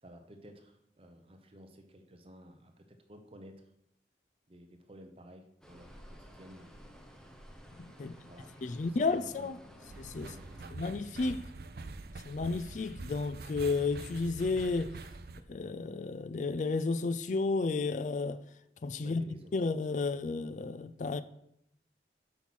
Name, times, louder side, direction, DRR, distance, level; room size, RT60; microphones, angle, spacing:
voice 1, 0.0-3.6 4.5-6.9 8.0-9.5 10.2-10.5 19.0-19.5, equal, 30° right, 0.8 m, -54 dB
sound 1, 5.6-10.7, equal, 5° left, 0.8 m, -54 dB
voice 2, 7.8-8.1 8.6-9.6 10.0-10.3 10.7-11.5 12.2-15.0 15.5-18.4 18.8-19.2 19.5-21.2, left 3 dB, 45° left, 0.3 m, -32 dB
sound 2, 9.9-15.4, right 3 dB, 60° right, 0.5 m, -45 dB
8.0 x 5.8 x 6.1 m
head